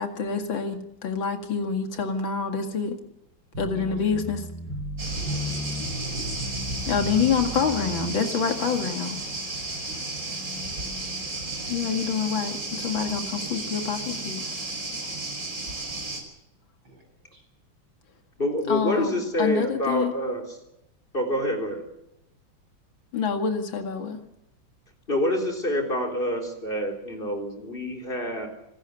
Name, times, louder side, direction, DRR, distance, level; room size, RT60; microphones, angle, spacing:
voice 1, 0.0-3.0 3.6-4.4 6.9-9.2 11.7-14.4 18.7-20.1 23.1-24.2, left 6 dB, 70° left, 5 dB, 2.9 m, -27 dB
sound 1, 3.5-8.1, equal, 55° right, 8.5 m, -34 dB
sound 2, 5.0-16.2, right 2 dB, 40° right, 5.8 m, -33 dB
voice 2, 5.1-6.3 7.3-7.8 9.9-10.0 16.8-17.0 17.3-17.4, right 1 dB, 75° right, 4 dB, 8.8 m, -44 dB
voice 3, 18.4-20.4 21.1-21.8 25.1-28.5, left 1 dB, 25° left, 2 dB, 4.2 m, -27 dB
27.5 x 13.5 x 8.1 m, 0.82 s
omnidirectional pair, 2.2 m